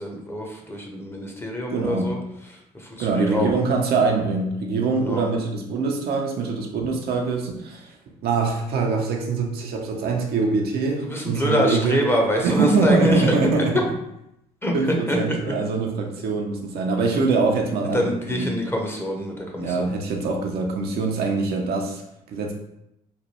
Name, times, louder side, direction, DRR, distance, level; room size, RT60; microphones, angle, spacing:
voice 1, 0.0-2.2 2.5-3.5 5.0-5.3 11.0-13.2 14.6-14.7 15.1-15.2 17.9-19.9, equal, 10° left, 1 dB, 0.7 m, -25 dB
voice 2, 1.7-2.2 3.0-7.9 8.2-12.1 12.4-13.7 14.7-18.5 19.6-22.0 22.3-22.5, right 4 dB, 60° right, 1 dB, 0.6 m, -23 dB
3.1 x 2.2 x 2.9 m, 0.82 s
hypercardioid pair, 55°, 18 cm